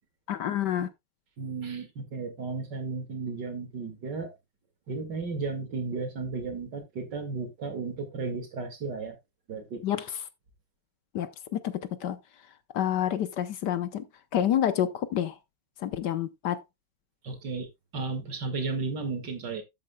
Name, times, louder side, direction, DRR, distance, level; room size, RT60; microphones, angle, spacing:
voice 1, 0.3-0.9 9.8-10.0 11.1-11.7 12.0-12.2 12.7-14.0 14.3-15.3 15.8-16.6, left 10 dB, 65° left, 1.3 m, -28 dB
voice 2, 1.4-4.3 4.9-9.2 9.5-9.8 17.2-19.6, right 4 dB, 60° right, 2.6 m, -34 dB
12.5 x 8.2 x 2.3 m
omnidirectional pair, 2.1 m